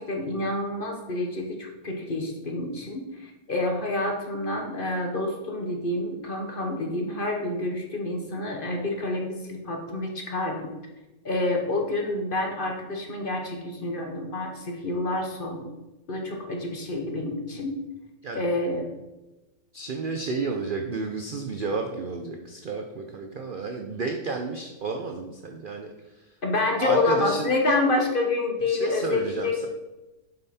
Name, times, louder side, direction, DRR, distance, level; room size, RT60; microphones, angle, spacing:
voice 1, 0.0-10.6 11.2-15.7 16.1-17.7 18.3-18.9 26.4-29.7, left 2 dB, 40° left, 2 dB, 1.0 m, -28 dB
voice 2, 19.7-26.3 26.8-27.5 28.7-29.7, right 4 dB, 60° right, 4 dB, 0.5 m, -32 dB
7.8 x 5.5 x 4.2 m, 1.0 s
omnidirectional pair, 1.6 m